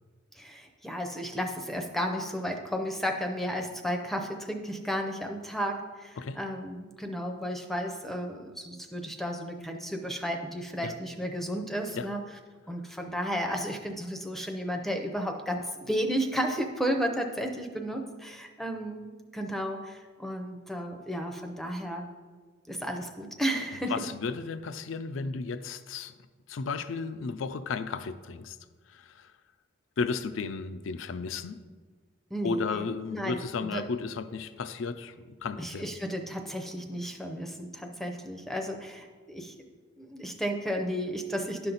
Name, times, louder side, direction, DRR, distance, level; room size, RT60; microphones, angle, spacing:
voice 1, 0.4-12.2 12.7-22.1 22.7-24.0 32.3-32.8 33.1-33.8 35.6-39.6 40.0-41.7, equal, ahead, 3 dB, 0.6 m, -33 dB
voice 2, 23.7-26.1 26.5-28.6 28.9-29.3 30.0-31.6 32.4-35.9, left 4 dB, 70° left, 12 dB, 0.4 m, -34 dB
11.0 x 5.8 x 3.9 m, 1.4 s
head